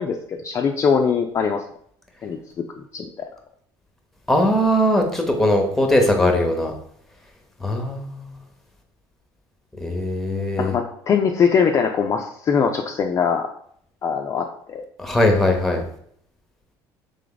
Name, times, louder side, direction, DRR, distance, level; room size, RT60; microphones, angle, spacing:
voice 1, 0.0-1.6 2.2-2.7 2.9-3.3 10.6-13.5 14.0-14.8, left 6 dB, 35° left, 3 dB, 0.3 m, -22 dB
voice 2, 4.3-6.7 7.6-8.4 9.8-10.7 15.0-15.8, left 1 dB, 5° left, 3 dB, 0.8 m, -20 dB
3.4 x 3.3 x 3.8 m, 0.66 s
cardioid pair, 120°, 9 cm